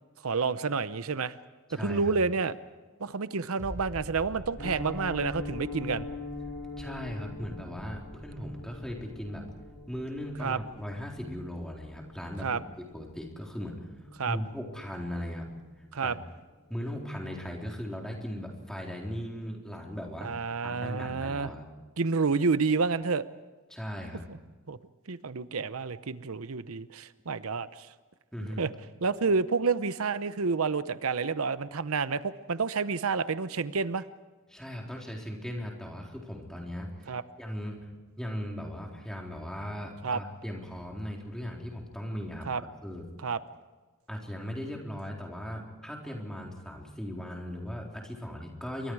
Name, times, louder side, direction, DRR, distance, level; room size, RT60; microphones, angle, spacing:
voice 1, 0.2-1.4 1.8-2.6 3.0-6.1 10.4-10.6 12.4-12.6 14.2-14.4 15.9-16.2 20.2-21.5 22.0-23.3 24.3-24.4 24.7-24.8 25.1-27.9 28.6-28.7 29.0-34.0 37.1-37.2 40.0-40.2 42.5-42.6 43.2-43.4, right 4 dB, 85° right, 14 dB, 0.8 m, -29 dB
voice 2, 1.7-2.1 6.8-9.4 9.9-13.9 14.3-15.5 16.0-16.2 16.7-20.3 20.6-21.6 23.7-24.2 28.3-28.6 34.5-37.8 38.2-42.5 42.8-43.1 44.1-48.9, equal, 5° left, -1 dB, 3.9 m, -38 dB
sound 1, 3.6-14.9 15.2-15.3, equal, 15° right, 4.8 m, -48 dB
Piano, 4.6-15.5 15.7-16.0 16.3-16.4 16.8-17.0 17.3-17.4, left 3 dB, 50° left, 7.9 m, -44 dB
28.0 x 24.0 x 4.8 m, 1.3 s
head